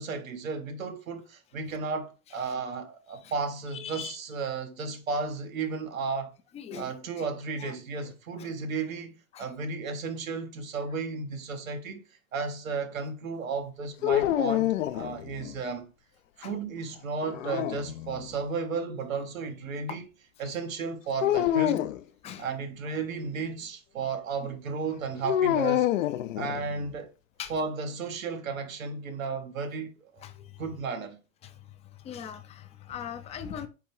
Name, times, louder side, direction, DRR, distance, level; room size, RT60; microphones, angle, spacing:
voice 1, 0.0-6.3 6.7-12.0 12.3-15.9 16.4-20.1 20.4-21.9 22.4-25.9 26.4-27.1 27.5-30.2 30.6-31.2, right 4 dB, 80° right, 1.1 m, -34 dB
voice 2, 3.7-4.2 6.5-7.3 7.6-7.7 8.0-8.1 8.4-8.5 9.3-9.5 14.9-15.3 16.4-16.6 20.4-20.6 21.7-21.8 22.2-22.5 27.4-27.5 30.2-30.3 31.4-31.5 32.0-33.7, left 8 dB, 15° left, 0.4 m, -41 dB
sound 1, 14.0-15.6 17.2-18.3 21.2-22.0 25.2-26.9, left 12 dB, 70° left, 0.5 m, -27 dB
4.3 x 3.8 x 3.2 m
hypercardioid pair, 95°, 41 cm